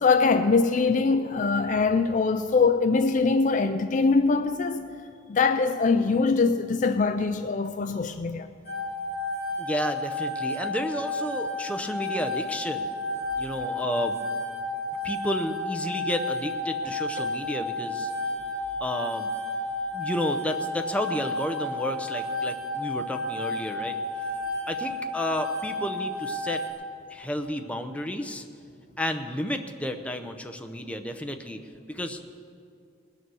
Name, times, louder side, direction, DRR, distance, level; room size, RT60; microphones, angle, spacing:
voice 1, 0.0-4.8 5.3-8.5 17.2-17.3, left 4 dB, 40° left, 0.4 m, -23 dB
sound 1, 8.7-26.7, left 1 dB, 55° left, 2.4 m, -31 dB
voice 2, 9.6-12.9 13.4-14.2 15.0-18.1 18.8-19.3 19.9-24.3 24.7-26.6 27.1-28.4 29.0-31.6 31.9-32.4, left 1 dB, 5° left, 0.6 m, -32 dB
20.0 x 6.8 x 6.2 m
head